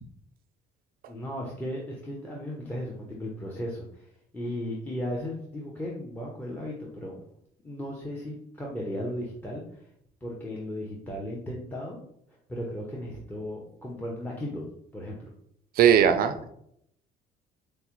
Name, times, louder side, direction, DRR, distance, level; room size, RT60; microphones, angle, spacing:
voice 1, 1.1-4.1 4.3-7.2 7.6-9.6 10.2-12.0 12.5-14.7 14.9-15.3, left 1 dB, 10° left, -3 dB, 0.6 m, -35 dB
voice 2, 15.8-16.5, right 8 dB, 60° right, 9 dB, 0.4 m, -19 dB
4.7 x 2.0 x 2.9 m, 0.72 s
cardioid pair, 110°, 17 cm